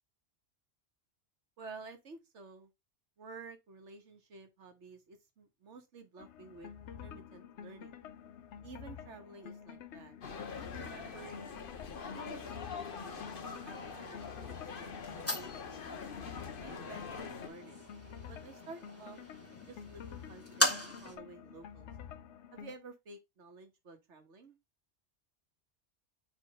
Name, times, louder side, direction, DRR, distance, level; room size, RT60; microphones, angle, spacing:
voice 1, 1.6-2.7 3.2-6.7 7.0-7.9 8.6-10.1 10.7-11.7 12.0-13.3 13.6-16.0 16.6-17.8 18.3-19.2 19.7-21.9 22.5-24.6, right 4 dB, 85° right, 1.6 m, -52 dB
sound 1, 6.2-22.8, left 8 dB, 80° left, 1.0 m, -49 dB
sound 2, 10.2-17.5, left 5 dB, 55° left, 1.0 m, -44 dB
sound 3, 12.9-21.2, left 1 dB, 10° left, 1.4 m, -40 dB
4.8 x 3.9 x 5.0 m
omnidirectional pair, 1.2 m